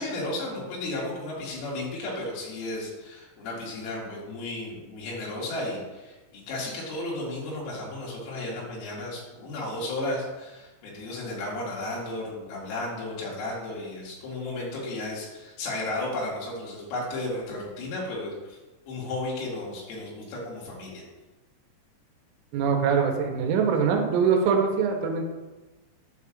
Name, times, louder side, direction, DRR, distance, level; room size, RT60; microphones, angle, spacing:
voice 1, 0.0-18.6 18.9-21.0, left 2 dB, 85° left, -5 dB, 4.5 m, -34 dB
voice 2, 22.5-25.3, right 6 dB, 85° right, 2 dB, 3.3 m, -23 dB
9.1 x 7.0 x 2.4 m, 1.2 s
omnidirectional pair, 5.7 m